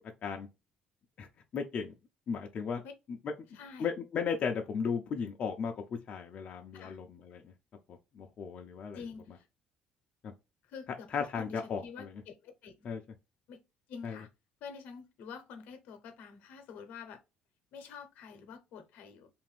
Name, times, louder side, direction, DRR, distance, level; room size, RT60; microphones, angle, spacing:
voice 1, 1.5-1.9 2.3-2.8 3.2-3.3 3.8-7.5 7.9-9.0 10.2-10.3 11.1-12.1 12.8-13.0 14.0-14.2, left 6 dB, 50° left, 0.4 m, -35 dB
voice 2, 3.5-3.9 6.7-7.0 8.9-9.4 10.7-12.9 13.5-13.6 13.9-14.3 14.6-17.2 17.7-19.3, left 6 dB, 75° left, 0.7 m, -47 dB
2.6 x 2.5 x 3.1 m
cardioid pair, 105°, 3 cm